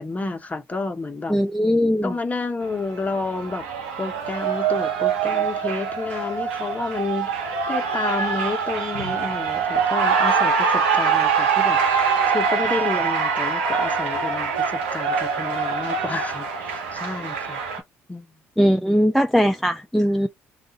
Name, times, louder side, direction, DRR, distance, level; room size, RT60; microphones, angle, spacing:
voice 1, 0.0-1.4 2.0-3.6 4.0-17.6 18.1-18.3, left 3 dB, 25° left, 0.9 m, -30 dB
voice 2, 1.3-2.1 18.6-20.3, equal, ahead, 0.3 m, -19 dB
Cheering, 2.6-17.8, right 6 dB, 90° right, 0.8 m, -24 dB
2.4 x 2.4 x 4.0 m
hypercardioid pair, 55°, 6 cm